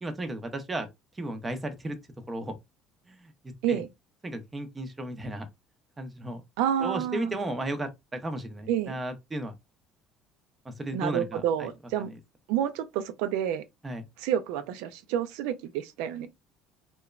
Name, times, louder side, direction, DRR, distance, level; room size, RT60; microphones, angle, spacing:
voice 1, 0.0-0.9 1.2-2.0 2.3-2.5 3.1-3.3 3.7-3.8 4.2-5.5 6.0-6.4 6.8-9.5 10.6-11.7 12.0-12.2 13.8-14.0, right 1 dB, 15° right, 0.5 m, -34 dB
voice 2, 6.6-7.4 8.7-8.9 10.9-12.1 12.5-13.6 14.2-16.3, right 10 dB, 85° right, 0.3 m, -29 dB
2.9 x 2.1 x 2.3 m
cardioid pair, 160°, 0 cm